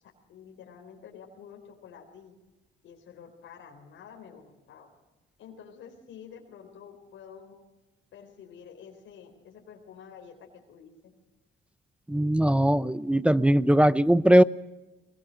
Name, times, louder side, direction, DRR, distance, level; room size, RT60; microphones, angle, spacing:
voice 1, 0.3-2.3 2.8-4.9 5.4-7.5 8.1-11.1, left 7 dB, 80° left, 3.8 m, -49 dB
voice 2, 12.1-14.4, right 1 dB, 5° right, 0.6 m, -20 dB
22.0 x 21.5 x 6.4 m
cardioid pair, 90°, 20 cm